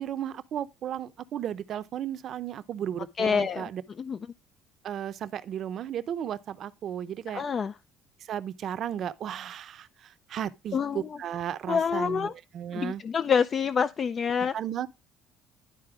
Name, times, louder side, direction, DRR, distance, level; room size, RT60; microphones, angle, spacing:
voice 1, 0.0-3.8 4.8-7.4 8.2-13.0 14.5-14.9, right 10 dB, 50° right, 0.7 m, -34 dB
voice 2, 3.2-3.7 4.0-4.2 7.3-7.7 10.7-11.2 11.7-12.3 12.7-14.5, left 6 dB, 35° left, 0.4 m, -27 dB
11.5 x 4.2 x 4.8 m
cardioid pair, 130°, 0 cm